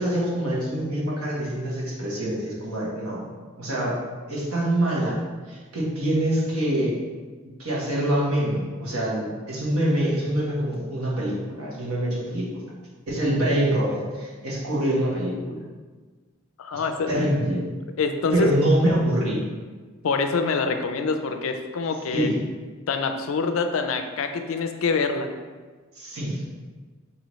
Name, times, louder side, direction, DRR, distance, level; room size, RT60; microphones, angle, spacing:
voice 1, 0.0-3.2 3.6-3.9 4.3-5.2 5.5-7.0 7.6-12.6 13.1-15.6 17.1-17.6 18.3-19.4 22.1-22.3 25.9-26.4, right 1 dB, 85° right, -5 dB, 1.2 m, -25 dB
voice 2, 16.6-17.2 18.0-18.5 20.0-22.3 22.9-25.3, left 4 dB, 65° left, 7 dB, 0.4 m, -25 dB
5.3 x 2.7 x 3.0 m, 1.4 s
head